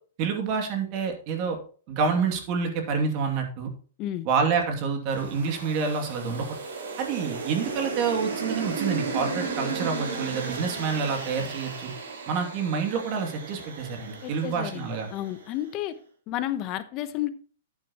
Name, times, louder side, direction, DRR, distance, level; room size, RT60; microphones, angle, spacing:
voice 1, 0.2-1.6 1.9-3.7 4.2-6.5 7.0-11.9 12.3-15.1, right 5 dB, 35° right, 2.6 m, -28 dB
sound 1, 5.1-15.5, right 4 dB, 85° right, 4.7 m, -35 dB
voice 2, 14.2-16.0 16.3-17.3, left 13 dB, 30° left, 0.9 m, -31 dB
10.5 x 9.3 x 3.0 m
hypercardioid pair, 160°, 0 cm